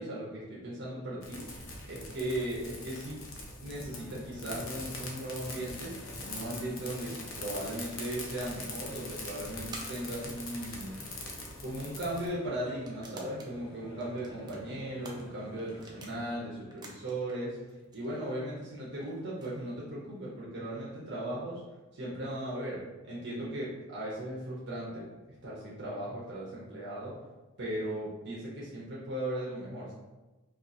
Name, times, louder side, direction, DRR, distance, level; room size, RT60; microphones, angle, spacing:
voice 1, 0.0-1.5 1.9-3.2 3.6-5.9 6.2-7.1 7.4-11.0 11.6-17.6 17.9-21.6 21.9-22.8 23.0-25.0 25.4-27.1 27.6-29.9, right 1 dB, 55° right, -6 dB, 0.7 m, -37 dB
sound 1, 1.2-12.3, left 2 dB, 70° left, 0.7 m, -43 dB
sound 2, 3.9-16.4, equal, 25° left, 0.8 m, -51 dB
sound 3, 6.3-7.1 7.6-7.7 7.8-7.9 8.6-8.8 9.7-11.0 11.7-11.8 12.7-13.6 13.9-16.2 16.6-17.4 17.7-20.1, right 2 dB, 20° right, 0.5 m, -51 dB
4.4 x 2.4 x 2.6 m, 1.1 s
head